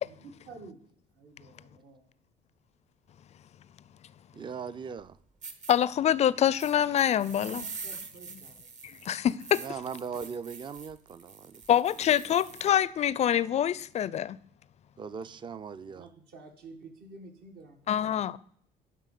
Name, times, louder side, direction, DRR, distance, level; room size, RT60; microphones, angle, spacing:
voice 1, 0.0-0.8 1.1-2.0 7.3-8.8 15.8-18.4, right 3 dB, 65° right, 1.8 m, -50 dB
voice 2, 4.3-5.2 9.6-11.6 15.0-16.1, right 6 dB, 30° right, 0.4 m, -39 dB
sound 1, 5.0-5.1 5.4-5.7 6.6-12.7, right 5 dB, 45° right, 1.2 m, -45 dB
voice 3, 5.7-7.6 8.8-9.6 11.7-14.4 17.9-18.4, left 10 dB, 40° left, 0.4 m, -25 dB
11.0 x 3.8 x 6.7 m
cardioid pair, 110°, 17 cm